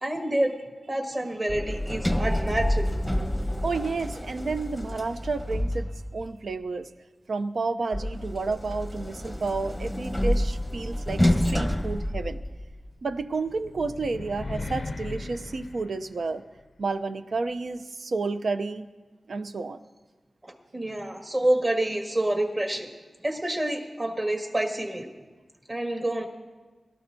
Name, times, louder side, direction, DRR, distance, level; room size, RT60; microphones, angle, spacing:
voice 1, 0.0-0.5 0.9-2.9 20.4-22.9 23.2-25.1 25.7-26.2, right 1 dB, 30° right, 2 dB, 1.9 m, -27 dB
Sliding door, 1.5-6.3 7.9-12.9, left 1 dB, 5° left, 0.9 m, -28 dB
voice 2, 3.6-6.9 7.3-12.4 13.0-16.4 16.8-18.9 19.3-19.8, right 3 dB, 65° right, 9 dB, 0.6 m, -31 dB
sound 1, 13.1-16.6, left 3 dB, 50° left, 0.5 m, -37 dB
22.5 x 13.0 x 2.7 m, 1.3 s
wide cardioid pair, 125°, 0 cm